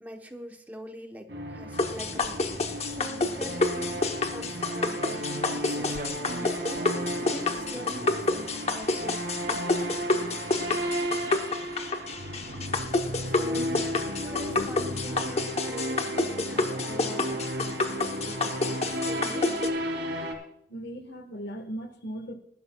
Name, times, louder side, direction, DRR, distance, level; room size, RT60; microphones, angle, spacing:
voice 1, 0.0-4.0 4.3-6.0 6.7-10.1 13.3-13.7 14.2-19.6, equal, 10° right, 4 dB, 1.0 m, -44 dB
sound 1, 1.3-20.3, equal, 70° right, 2.7 m, -34 dB
sound 2, 1.8-19.7, left 3 dB, 35° left, 0.9 m, -29 dB
sound 3, 2.1-14.6, right 2 dB, 45° right, 0.8 m, -46 dB
voice 2, 13.6-14.7 19.1-19.5 20.7-22.3, equal, 70° left, 8 dB, 1.4 m, -39 dB
20.0 x 11.5 x 2.3 m, 0.74 s
head